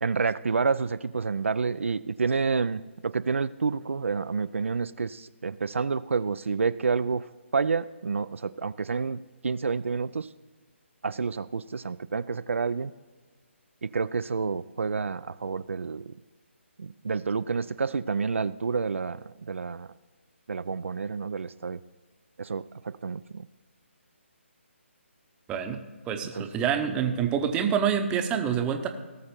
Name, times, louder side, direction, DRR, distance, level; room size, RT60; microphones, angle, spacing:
voice 1, 0.0-10.3 11.0-12.9 13.8-16.1 16.8-19.9 20.5-21.8 22.4-23.5 26.3-26.5, right 5 dB, 75° right, 14 dB, 0.4 m, -29 dB
voice 2, 26.1-28.9, right 8 dB, 15° right, 6 dB, 0.8 m, -26 dB
17.5 x 6.6 x 4.3 m, 1.4 s
figure-of-eight pair, 145°, 7 cm